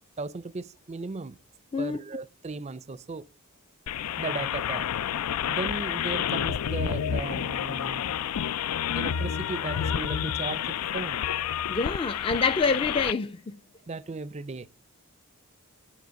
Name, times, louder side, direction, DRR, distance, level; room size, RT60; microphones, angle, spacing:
voice 1, 0.2-1.4 1.8-3.3 4.2-4.9 5.5-8.0 8.9-11.2 13.9-14.7, right 3 dB, 30° right, 0.5 m, -36 dB
sound 1, 3.9-13.1, left 9 dB, 90° left, 0.4 m, -29 dB
voice 2, 11.7-13.6, left 4 dB, 25° left, 0.4 m, -27 dB
9.5 x 7.2 x 6.3 m
head